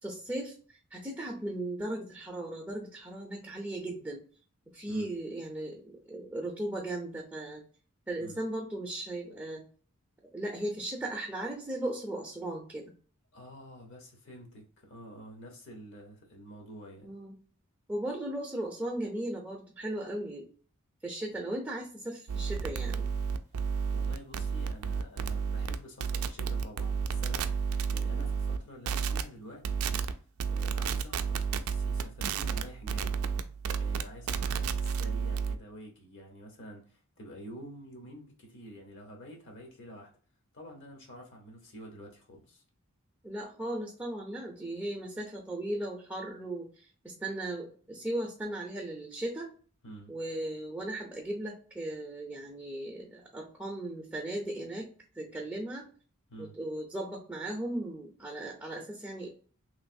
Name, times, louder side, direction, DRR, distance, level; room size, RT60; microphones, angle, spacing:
voice 1, 0.0-4.2 4.7-7.6 8.1-9.7 10.3-12.9 17.0-17.3 17.9-20.5 21.0-23.0 43.2-49.5 50.1-54.9 55.2-55.9 56.4-59.3, right 1 dB, 10° right, 0.6 m, -37 dB
voice 2, 13.3-17.1 23.9-29.9 30.5-33.1 33.8-40.1 40.5-42.6 49.8-50.1 56.3-56.5, equal, 60° left, 1.0 m, -48 dB
sound 1, 22.3-28.6 28.9-29.2 29.7-30.1 30.4-35.6, right 6 dB, 70° right, 0.3 m, -31 dB
3.1 x 2.5 x 2.6 m
head